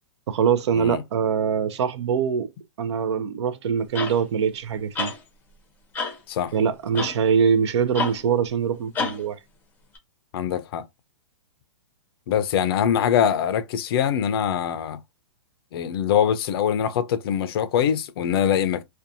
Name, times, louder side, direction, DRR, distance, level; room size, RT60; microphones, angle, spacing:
voice 1, 0.3-2.5 2.8-5.1 6.5-9.4, right 7 dB, 65° right, 0.5 m, -23 dB
sound 1, 3.9-4.2 5.0-5.2 5.9-6.2 7.0-7.2 7.9-8.2 9.0-9.2 10.0-10.1, left 4 dB, 10° left, 0.6 m, -28 dB
voice 2, 10.3-10.9 12.3-15.0 15.7-18.8, left 9 dB, 55° left, 0.4 m, -23 dB
2.6 x 2.2 x 2.5 m
hypercardioid pair, 135°, 15 cm